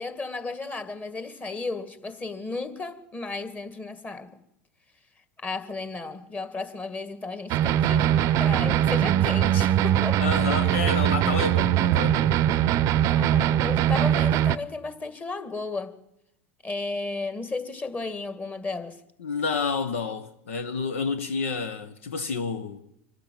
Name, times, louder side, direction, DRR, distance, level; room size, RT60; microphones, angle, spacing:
voice 1, 0.0-4.3 5.4-10.2 13.1-16.0 16.6-19.0, left 3 dB, 25° left, 2.2 m, -34 dB
sound 1, 7.5-14.6, right 11 dB, 50° right, 0.6 m, -22 dB
voice 2, 10.2-12.4 19.2-22.9, left 5 dB, 80° left, 1.0 m, -29 dB
25.0 x 12.5 x 8.8 m
hypercardioid pair, 90°, 7 cm